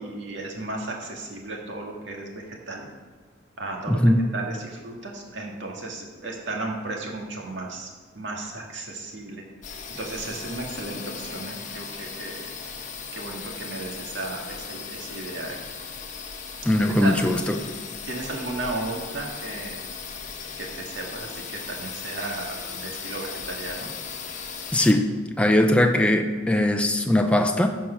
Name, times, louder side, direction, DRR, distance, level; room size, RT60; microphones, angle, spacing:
voice 1, 0.0-2.8 3.6-4.0 4.3-7.9 8.1-9.4 10.0-12.4 13.1-15.6 16.8-17.1 18.0-19.8 20.6-23.9, right 2 dB, 65° right, -1 dB, 2.0 m, -34 dB
voice 2, 3.9-4.2 16.6-17.6 24.7-25.1 25.4-27.7, left 1 dB, 5° left, 4 dB, 0.6 m, -20 dB
sound 1, 9.6-24.9, left 5 dB, 40° left, 1.1 m, -37 dB
14.0 x 4.8 x 5.7 m, 1.4 s
head